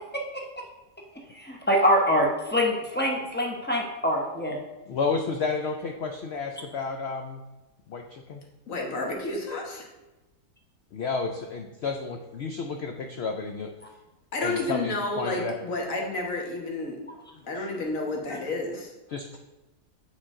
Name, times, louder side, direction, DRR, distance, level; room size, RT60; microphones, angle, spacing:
voice 1, 1.3-4.6, equal, 10° left, -1 dB, 0.5 m, -24 dB
voice 2, 4.9-7.4 7.9-8.4 10.9-13.7 14.4-15.6 19.1-19.4, left 4 dB, 85° left, 4 dB, 0.5 m, -31 dB
voice 3, 8.7-9.9 14.3-17.0 17.5-18.9, left 2 dB, 55° left, 0 dB, 1.5 m, -30 dB
8.7 x 3.9 x 3.6 m, 1.1 s
omnidirectional pair, 1.7 m